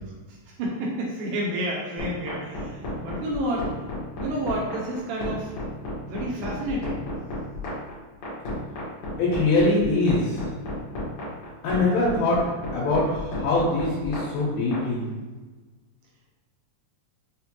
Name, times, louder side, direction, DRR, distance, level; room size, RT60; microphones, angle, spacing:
voice 1, 0.3-3.7 4.2-5.5 6.1-7.1, right 1 dB, 85° right, -3 dB, 1.9 m, -30 dB
sound 1, 2.0-14.8, left 2 dB, 70° left, 1.4 m, -32 dB
voice 2, 9.2-10.4 11.6-12.4 12.7-15.0, left 2 dB, 85° left, -6 dB, 2.6 m, -23 dB
6.0 x 2.2 x 2.8 m, 1.3 s
omnidirectional pair, 4.2 m